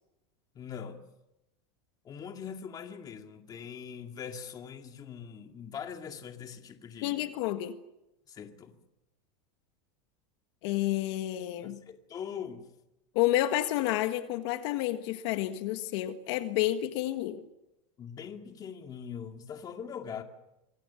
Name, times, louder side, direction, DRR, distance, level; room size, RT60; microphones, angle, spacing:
voice 1, 0.5-1.0 2.0-7.2 8.3-8.8 11.6-12.7 18.0-20.2, left 7 dB, 25° left, 2.3 m, -42 dB
voice 2, 7.0-7.8 10.6-11.8 13.2-17.4, left 14 dB, 60° left, 1.7 m, -30 dB
26.5 x 23.0 x 7.1 m
supercardioid pair, 160°, 16 cm